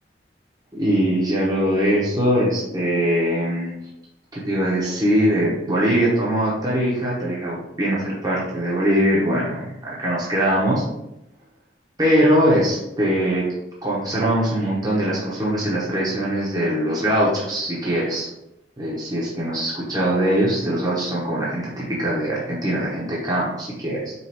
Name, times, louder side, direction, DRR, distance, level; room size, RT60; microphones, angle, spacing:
voice 1, 0.7-3.7 4.3-10.8 12.0-13.5 13.8-18.3 18.8-24.1, equal, 20° right, -6 dB, 0.9 m, -22 dB
5.4 x 2.5 x 2.9 m, 0.87 s
head